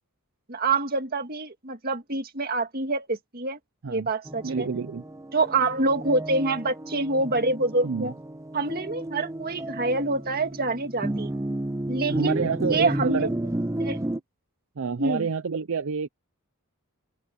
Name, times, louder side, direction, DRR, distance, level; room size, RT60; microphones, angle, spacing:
voice 1, 0.5-3.6 3.9-4.7 5.3-8.1 8.5-11.3 11.9-13.3 13.8-14.0 15.0-15.3, right 3 dB, 45° right, 1.9 m, -26 dB
sound 1, 4.3-14.2, right 1 dB, 15° right, 0.6 m, -32 dB
voice 2, 4.4-5.0 7.8-8.1 12.1-13.3 14.8-16.1, right 5 dB, 60° right, 0.5 m, -28 dB
open air
head